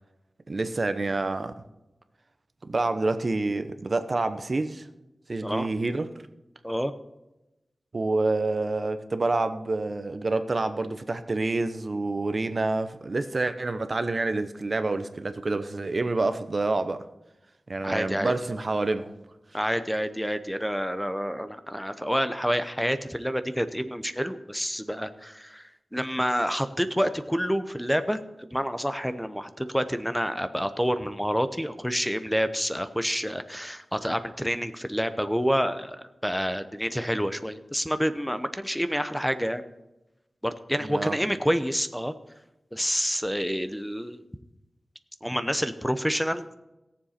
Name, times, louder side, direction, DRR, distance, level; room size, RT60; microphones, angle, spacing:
voice 1, 0.5-1.5 2.6-4.9 5.3-6.1 7.9-17.0 17.7-19.1 40.8-41.2, right 2 dB, 45° right, 10 dB, 0.8 m, -27 dB
voice 2, 17.8-18.3 19.5-25.6 25.9-36.0 36.2-39.6 40.4-42.1 42.7-44.2 45.2-46.6, equal, ahead, 10 dB, 0.7 m, -28 dB
17.5 x 7.4 x 4.3 m, 0.97 s
wide cardioid pair, 85°, 0 cm